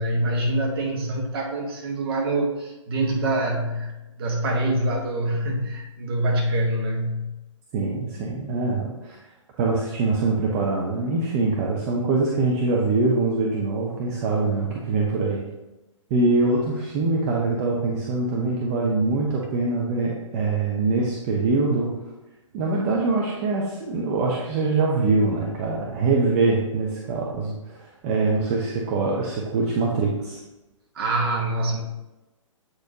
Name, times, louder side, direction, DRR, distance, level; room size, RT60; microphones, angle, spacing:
voice 1, 0.0-3.9 4.2-7.3 30.9-31.8, right 1 dB, 45° right, 0 dB, 1.3 m, -25 dB
voice 2, 7.7-9.2 9.6-15.4 16.1-21.9 22.5-30.4, right 3 dB, 30° right, -2 dB, 0.7 m, -23 dB
7.9 x 4.2 x 2.8 m, 1.0 s
figure-of-eight pair, 120°, 17 cm